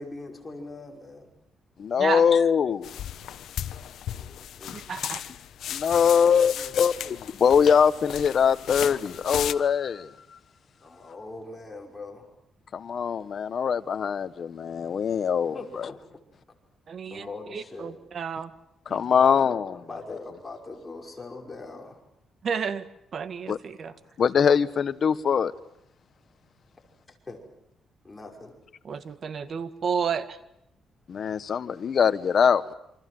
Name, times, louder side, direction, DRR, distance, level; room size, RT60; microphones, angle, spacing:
voice 1, 0.0-1.3 4.1-4.8 6.0-7.0 8.6-8.7 10.8-12.3 15.5-16.0 17.1-18.0 19.1-22.0 27.1-27.4 28.0-28.5, left 3 dB, 20° left, 5.5 m, -42 dB
voice 2, 1.8-3.0 5.7-10.4 12.7-15.9 18.9-19.7 23.5-23.6 24.2-25.5 31.1-32.7, left 7 dB, 50° left, 1.3 m, -23 dB
sound 1, 2.8-9.5, left 11 dB, 75° left, 1.1 m, -35 dB
voice 3, 4.7-5.2 16.9-18.5 18.9-19.0 22.4-23.9 28.9-30.4, right 6 dB, 50° right, 1.8 m, -31 dB
28.0 x 26.0 x 7.8 m
cardioid pair, 120°, 0 cm